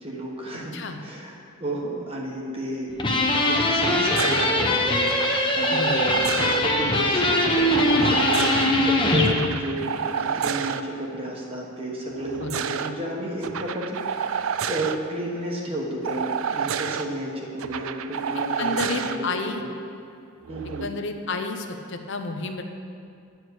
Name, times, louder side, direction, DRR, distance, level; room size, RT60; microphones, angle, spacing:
voice 1, 0.0-0.7 1.0-2.9 3.3-14.3 14.7-19.3 19.5-19.7 20.5-20.9, equal, 25° right, -2 dB, 1.1 m, -32 dB
sound 1, 3.0-9.4, left 1 dB, 20° left, 0.8 m, -21 dB
sound 2, 4.2-4.5 5.1-6.6 7.7-8.7 9.3-10.8 12.1-12.9 13.4-15.0 16.0-17.0 17.6-19.2 20.5-20.8, right 7 dB, 70° right, 0.4 m, -29 dB
voice 2, 5.7-6.1 12.4-12.6 18.6-19.6 20.8-22.6, left 3 dB, 55° left, 6 dB, 0.7 m, -30 dB
9.7 x 4.7 x 7.9 m, 2.4 s
head